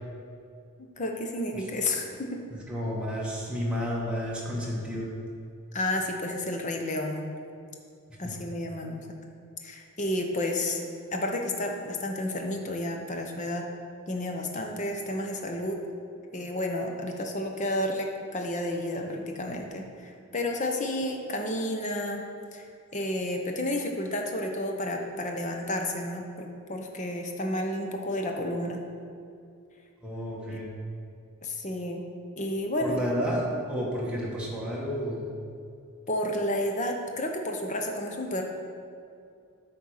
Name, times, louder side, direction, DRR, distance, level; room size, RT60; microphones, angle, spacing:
voice 1, 1.0-2.4 5.7-7.3 8.2-9.0 9.6-13.7 14.1-15.8 16.3-22.2 22.5-22.6 22.9-28.8 30.5-30.6 31.4-32.0 32.4-33.0 36.1-38.4, left 1 dB, 35° left, 2 dB, 0.9 m, -31 dB
voice 2, 2.7-5.1 8.2-8.3 30.0-30.7 32.8-35.4, equal, 5° right, -5 dB, 1.6 m, -31 dB
9.4 x 4.5 x 6.5 m, 2.4 s
head